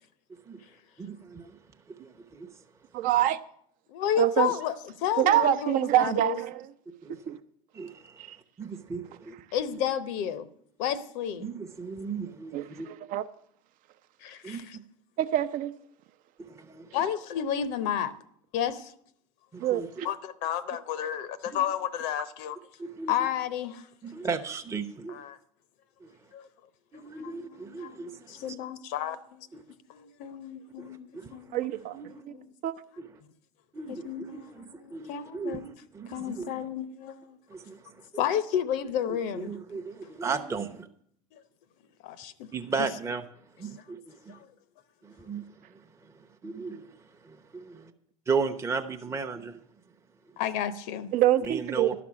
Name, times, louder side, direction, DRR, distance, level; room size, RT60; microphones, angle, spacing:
voice 1, 1.0-1.6 1.9-2.6 3.0-3.1 7.0-7.4 7.7-8.3 8.6-9.3 9.7-9.8 11.4-12.9 14.4-14.8 16.4-16.9 19.5-19.9 21.5-21.6 22.8-23.3 24.0-25.2 26.0-26.1 26.9-28.6 29.5-29.6 30.8-31.5 31.9-32.2 33.0-33.1 33.7-36.5 37.5-38.1 39.1-40.9 42.5-43.3 43.6-44.4 45.0-47.7 48.3-49.6 51.5-51.9, right 5 dB, 15° right, 0.8 m, -36 dB
voice 2, 2.9-3.4 4.2-4.5 5.2-6.7 7.1-7.4 8.3-8.4 12.5-12.6 13.1-13.2 15.2-15.7 19.6-20.1 31.5-32.0 32.6-32.7 51.1-51.9, right 13 dB, 50° right, 0.7 m, -25 dB
voice 3, 3.9-6.4 9.5-10.5 10.8-11.5 14.2-14.8 16.9-18.1 18.5-18.9 20.0-22.6 23.1-23.9 25.1-25.4 26.3-26.5 27.2-29.5 29.9-31.7 32.3-32.5 33.9-35.7 36.1-37.4 38.2-39.5 41.3-41.4 42.0-42.5 44.3-44.4 50.4-51.1, left 9 dB, 60° left, 0.8 m, -32 dB
12.0 x 6.0 x 8.5 m
hypercardioid pair, 80°, 18 cm